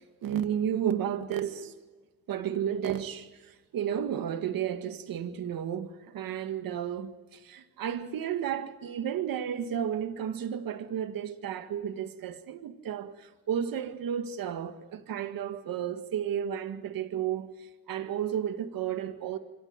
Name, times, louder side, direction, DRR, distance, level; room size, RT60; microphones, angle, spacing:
voice 1, 0.0-1.8 2.3-19.4, right 9 dB, 80° right, 2.0 m, -33 dB
26.0 x 15.0 x 9.2 m
cardioid pair, 85°, 34 cm